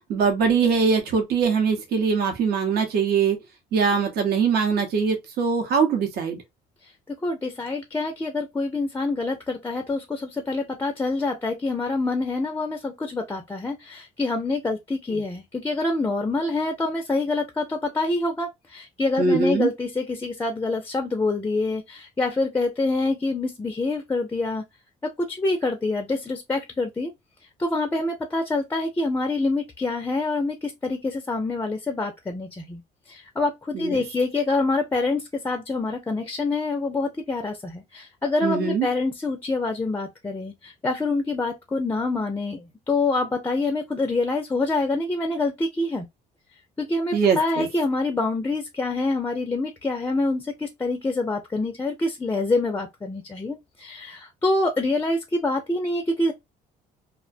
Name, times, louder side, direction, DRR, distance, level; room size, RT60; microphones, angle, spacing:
voice 1, 0.1-3.4 3.7-6.4 19.2-19.7 33.7-34.0 38.4-38.9 47.1-47.7, right 5 dB, 70° right, 0.8 m, -22 dB
voice 2, 7.2-24.6 25.0-27.1 27.6-32.8 33.1-46.1 46.8-56.3, left 2 dB, 15° left, 0.4 m, -26 dB
2.4 x 2.1 x 2.5 m
cardioid pair, 110°, 17 cm